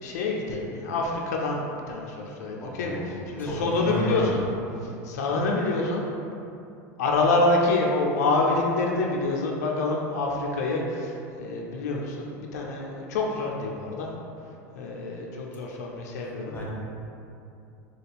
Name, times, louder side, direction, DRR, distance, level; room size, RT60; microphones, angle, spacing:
voice 1, 0.0-4.4 4.8-6.0 7.0-14.1 14.8-16.5, left 2 dB, 85° left, -1 dB, 0.5 m, -27 dB
voice 2, 2.6-4.4 16.5-16.7, left 1 dB, 20° left, -5 dB, 0.8 m, -33 dB
3.3 x 2.4 x 4.1 m, 2.7 s
supercardioid pair, 115°, 9 cm